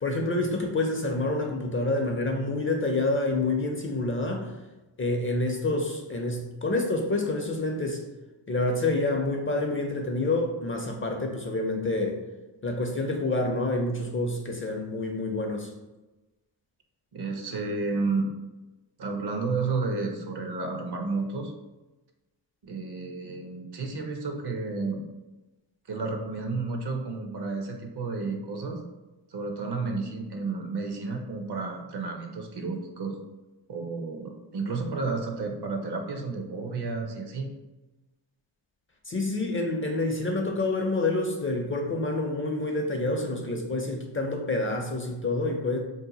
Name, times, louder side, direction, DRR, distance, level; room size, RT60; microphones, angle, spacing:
voice 1, 0.0-4.5 5.0-8.0 8.5-12.2 12.6-15.7 39.1-45.8, left 2 dB, 30° left, 2 dB, 0.5 m, -28 dB
voice 2, 17.1-18.3 19.0-21.5 22.6-25.0 25.9-28.8 29.3-33.1 33.7-37.5, right 3 dB, 55° right, 3 dB, 0.7 m, -31 dB
2.7 x 2.1 x 4.0 m, 1.1 s
cardioid pair, 65°, 47 cm